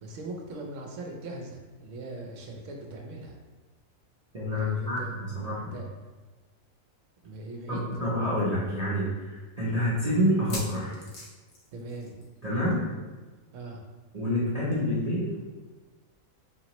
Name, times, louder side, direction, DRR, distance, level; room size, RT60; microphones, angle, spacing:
voice 1, 0.0-3.4 4.5-5.1 5.7-5.9 7.2-8.0 11.7-12.2 13.5-13.8, right 2 dB, 65° right, 1 dB, 1.0 m, -40 dB
voice 2, 4.3-5.8 7.7-11.0 12.4-12.9 14.1-15.3, equal, 40° right, -9 dB, 0.6 m, -28 dB
sound 1, 7.6-7.7 8.0-8.1 8.7-8.8 10.3-12.4 12.7-12.9 13.2-13.3 14.7-14.8, left 2 dB, 75° left, 1.3 m, -42 dB
4.4 x 2.9 x 2.9 m, 1.3 s
omnidirectional pair, 1.5 m